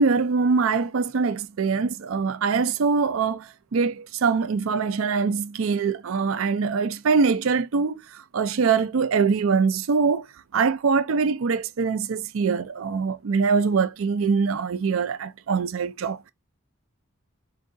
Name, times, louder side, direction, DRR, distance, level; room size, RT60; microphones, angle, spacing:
voice 1, 0.0-10.3 10.5-16.3, right 5 dB, 75° right, 0.4 m, -23 dB
4.6 x 2.6 x 2.5 m
head